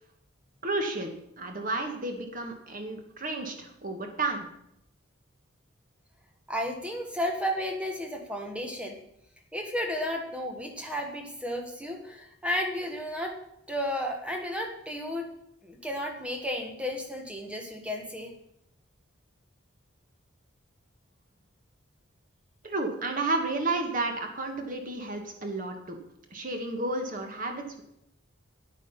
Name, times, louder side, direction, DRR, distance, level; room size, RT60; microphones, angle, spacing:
voice 1, 0.6-1.1 1.4-4.5 22.6-26.0 26.3-27.8, right 2 dB, 40° right, 4 dB, 1.5 m, -32 dB
voice 2, 6.5-9.0 9.5-13.4 13.7-15.3 15.6-18.3, equal, 5° right, 2 dB, 1.3 m, -33 dB
9.0 x 8.9 x 5.7 m, 0.77 s
head